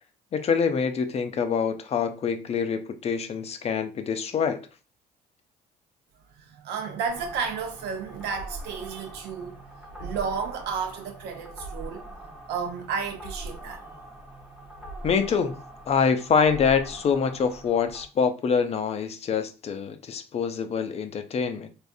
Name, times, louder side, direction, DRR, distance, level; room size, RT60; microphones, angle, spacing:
voice 1, 0.3-4.6 15.0-15.6 15.9-21.7, left 6 dB, 40° left, 0.4 m, -25 dB
voice 2, 6.5-9.6 10.0-12.0 12.5-13.8, right 6 dB, 80° right, 0.7 m, -32 dB
sound 1, 7.1-18.1, right 1 dB, 5° right, 0.8 m, -42 dB
3.4 x 2.4 x 2.5 m
cardioid pair, 110°, 17 cm